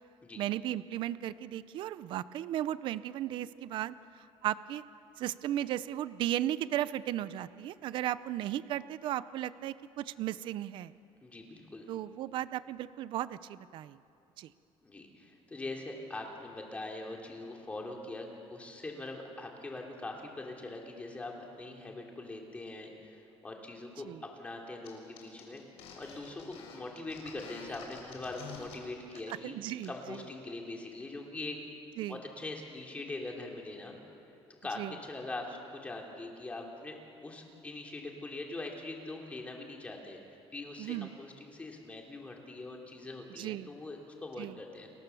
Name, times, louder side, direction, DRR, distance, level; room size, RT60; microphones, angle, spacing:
voice 1, 0.4-4.8 5.2-10.9 11.9-14.0 14.4-14.5 24.0-24.2 29.3-30.2 32.0-32.2 34.8-34.9 40.8-41.1 43.4-43.7 44.4-44.6, right 12 dB, 50° right, 16 dB, 0.6 m, -35 dB
voice 2, 11.2-11.9 14.8-24.1 24.4-25.7 26.0-29.5 29.9-31.6 32.1-34.0 34.6-44.9, left 2 dB, 10° left, 0 dB, 2.9 m, -42 dB
sound 1, 24.8-24.9 25.2-28.7 29.1-29.3 29.7-30.2, left 6 dB, 70° left, 5.5 m, -48 dB
30.0 x 22.5 x 7.0 m, 2.7 s
cardioid pair, 180°, 11 cm